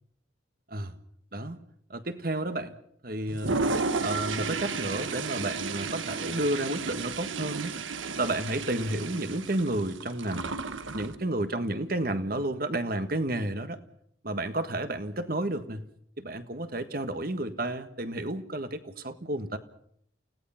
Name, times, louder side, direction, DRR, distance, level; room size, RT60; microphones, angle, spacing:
voice 1, 1.3-1.6 1.9-2.7 3.0-3.6 4.0-7.8 8.2-10.5 10.9-13.8 14.2-15.9 16.2-19.6, right 1 dB, 50° right, 9 dB, 1.6 m, -31 dB
Toilet flush, 3.3-11.2, right 4 dB, 90° right, 1.5 m, -33 dB
29.0 x 17.5 x 5.8 m, 0.67 s
head